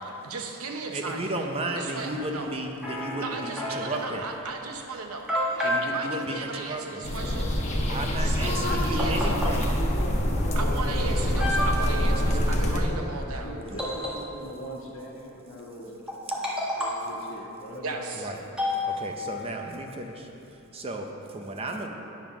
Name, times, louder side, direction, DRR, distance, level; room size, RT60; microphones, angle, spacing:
voice 1, 0.0-1.2 1.7-2.5 3.2-7.6 8.2-9.2 10.5-13.5 17.8-18.3, right 3 dB, 80° right, 3 dB, 0.9 m, -36 dB
voice 2, 0.9-4.3 5.6-7.0 7.9-9.8 13.7-13.8 16.3-16.4 18.1-18.4 18.8-21.9, right 1 dB, 25° right, 3 dB, 0.6 m, -34 dB
sound 1, 2.8-4.0 4.8-4.9 5.3-5.9 8.4-8.5 9.0-9.6 10.6-10.7 11.3-12.1 13.8-14.6 16.1-17.1 18.6-19.4, left 1 dB, 5° right, 1.2 m, -30 dB
sound 2, 7.0-12.8, equal, 30° left, 0.9 m, -25 dB
voice 3, 8.4-8.9 9.2-11.5 11.8-16.4 16.8-18.3 18.6-18.8, equal, 60° left, -2 dB, 1.5 m, -39 dB
9.4 x 5.3 x 6.1 m, 2.9 s
head